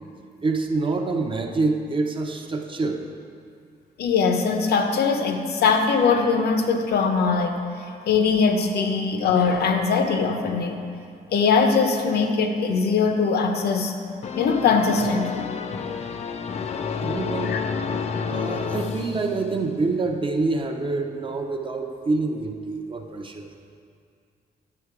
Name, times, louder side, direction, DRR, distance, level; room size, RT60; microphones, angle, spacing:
voice 1, 0.4-3.0 17.0-17.5 18.3-23.5, right 3 dB, 30° right, 3 dB, 0.6 m, -26 dB
voice 2, 4.0-7.6 8.1-10.8 11.3-13.9 14.4-15.5 17.4-17.6, left 5 dB, 75° left, 5 dB, 0.8 m, -21 dB
sound 1, 14.2-19.9, left 5 dB, 40° left, 0.4 m, -30 dB
10.0 x 6.6 x 4.7 m, 2.3 s
wide cardioid pair, 165°, 17 cm